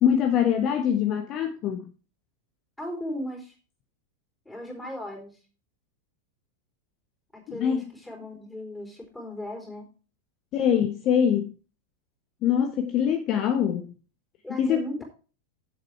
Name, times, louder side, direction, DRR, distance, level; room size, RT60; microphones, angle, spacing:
voice 1, 0.0-1.8 7.5-7.9 10.5-11.5 12.4-13.9 14.6-15.0, left 8 dB, 35° left, 1.0 m, -24 dB
voice 2, 2.8-3.5 4.5-5.4 7.3-9.9 14.4-15.0, equal, 5° left, 4.0 m, -37 dB
8.1 x 7.7 x 4.6 m
figure-of-eight pair, 90°, 0 cm